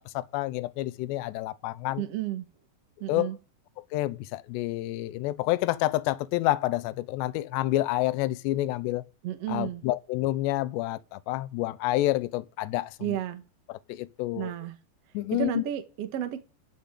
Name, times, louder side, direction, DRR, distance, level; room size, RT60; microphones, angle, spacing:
voice 1, 0.0-2.0 3.1-3.3 3.9-9.0 9.5-13.2 13.7-14.5 15.1-15.6, left 16 dB, 80° left, 2.9 m, -29 dB
voice 2, 2.0-2.4 3.0-3.4 9.2-9.8 13.0-13.4 14.3-14.7 15.3-16.4, right 12 dB, 80° right, 1.4 m, -32 dB
14.0 x 5.7 x 8.1 m
omnidirectional pair, 5.0 m